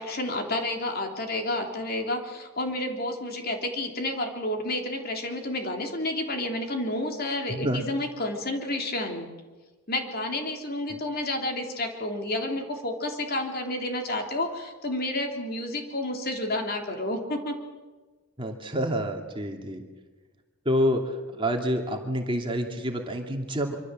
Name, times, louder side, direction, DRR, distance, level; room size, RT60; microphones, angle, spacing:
voice 1, 0.0-9.3 9.9-17.6, left 1 dB, 45° left, 3 dB, 3.3 m, -30 dB
voice 2, 7.5-7.8 18.4-19.8 20.6-23.8, equal, 25° right, 3 dB, 2.6 m, -28 dB
25.5 x 25.0 x 7.6 m, 1.3 s
head